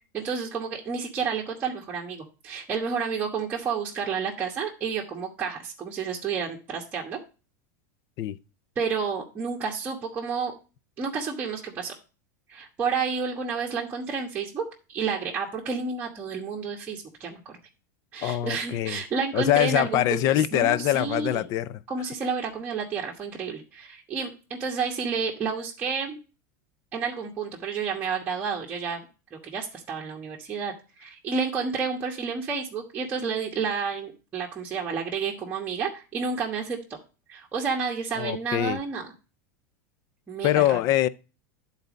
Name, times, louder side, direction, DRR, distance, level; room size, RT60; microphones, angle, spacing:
voice 1, 0.1-7.2 8.7-10.5 11.0-11.9 12.5-14.6 14.9-17.5 18.1-21.5 21.9-26.2 26.9-37.0 37.3-39.1 40.3-40.8, right 5 dB, 15° right, 1.2 m, -30 dB
voice 2, 18.2-19.0 19.3-21.8 38.2-38.8 40.4-41.1, left 13 dB, 35° left, 0.4 m, -23 dB
10.5 x 4.1 x 5.1 m
supercardioid pair, 160°, 10 cm